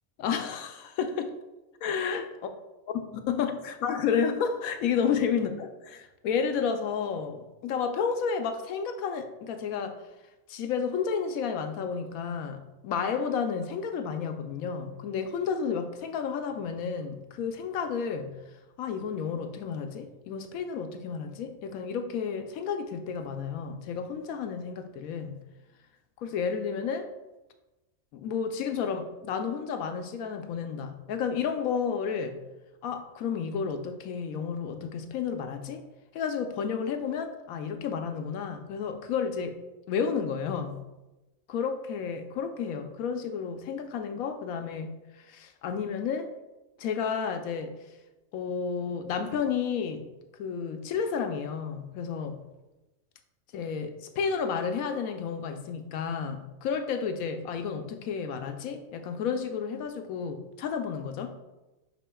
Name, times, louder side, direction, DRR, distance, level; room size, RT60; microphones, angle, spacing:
voice 1, 0.2-1.3 1.8-2.3 3.3-10.0 10.5-18.3 18.8-25.4 26.2-27.1 28.1-32.4 32.8-35.8 36.1-39.6 39.9-40.9 41.5-45.0 45.3-46.3 46.8-47.8 48.3-50.1 50.4-52.4 53.5-61.3, left 6 dB, 80° left, 7 dB, 1.0 m, -31 dB
10.0 x 4.3 x 2.3 m, 1.0 s
omnidirectional pair, 1.5 m